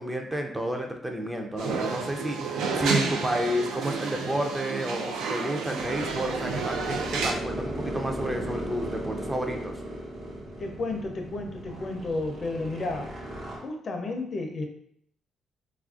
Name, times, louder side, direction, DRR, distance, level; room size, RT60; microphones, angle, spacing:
voice 1, 0.0-9.7, equal, 15° right, 3 dB, 0.4 m, -31 dB
sound 1, 1.6-7.3, right 4 dB, 85° right, 0.3 m, -30 dB
sound 2, 5.8-13.6, right 1 dB, 65° right, 0.8 m, -36 dB
voice 2, 10.6-13.2 13.5-14.7, left 2 dB, 45° left, 4 dB, 0.5 m, -32 dB
3.1 x 2.4 x 2.4 m, 0.68 s
cardioid pair, 90°, 0 cm